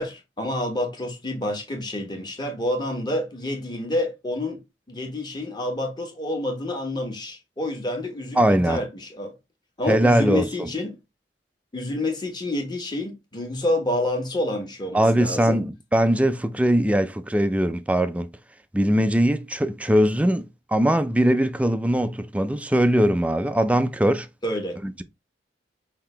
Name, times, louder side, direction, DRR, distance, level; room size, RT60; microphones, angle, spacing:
voice 1, 0.0-4.6 4.9-9.3 9.8-11.0 11.7-15.6 24.4-24.8, left 1 dB, 25° left, 1.3 m, -28 dB
voice 2, 8.4-8.8 9.9-10.7 14.9-18.3 18.7-20.4 20.7-24.3 24.8-25.0, right 1 dB, 10° right, 0.4 m, -21 dB
5.6 x 2.8 x 3.3 m
head